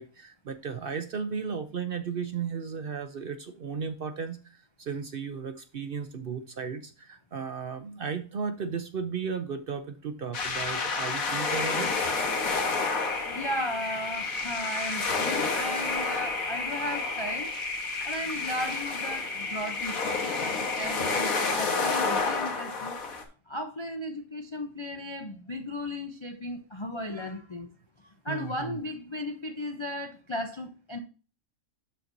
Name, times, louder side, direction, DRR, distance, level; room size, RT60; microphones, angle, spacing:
voice 1, 0.0-4.4 4.8-12.0 28.3-28.8, right 6 dB, 55° right, 0.7 m, -35 dB
sound 1, 10.3-23.2, left 4 dB, 85° left, 1.7 m, -31 dB
sound 2, 11.5-21.5, left 3 dB, 65° left, 2.1 m, -34 dB
voice 2, 13.3-17.5 18.0-23.0 23.5-27.7 28.0-31.0, left 1 dB, 40° left, 0.4 m, -36 dB
12.0 x 4.4 x 2.6 m
omnidirectional pair, 1.4 m